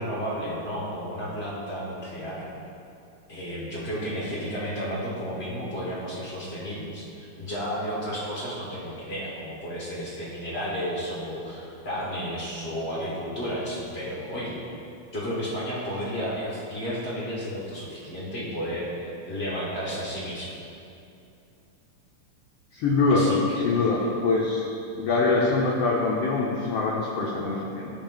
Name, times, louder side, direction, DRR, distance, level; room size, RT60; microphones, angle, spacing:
voice 1, 0.0-2.4 3.3-14.6 15.1-20.5 23.1-24.2, equal, 45° left, -6 dB, 0.8 m, -32 dB
voice 2, 22.7-23.3 23.6-24.6 24.9-27.9, left 3 dB, 80° left, -3 dB, 1.3 m, -24 dB
12.0 x 4.7 x 3.9 m, 2.7 s
omnidirectional pair, 3.7 m